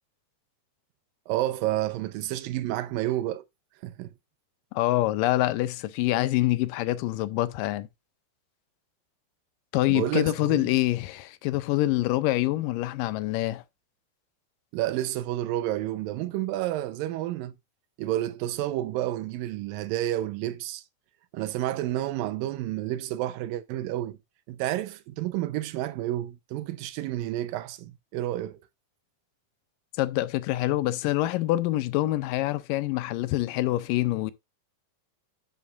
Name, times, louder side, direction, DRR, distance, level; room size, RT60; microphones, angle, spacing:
voice 1, 1.3-3.4 3.8-4.1 9.9-10.7 14.7-17.5 18.0-20.8 21.3-24.2 24.5-28.6, right 14 dB, 90° right, 2.5 m, -30 dB
voice 2, 4.7-7.9 9.7-13.6 30.0-34.3, left 16 dB, 80° left, 2.3 m, -26 dB
10.5 x 7.2 x 2.5 m
omnidirectional pair, 3.9 m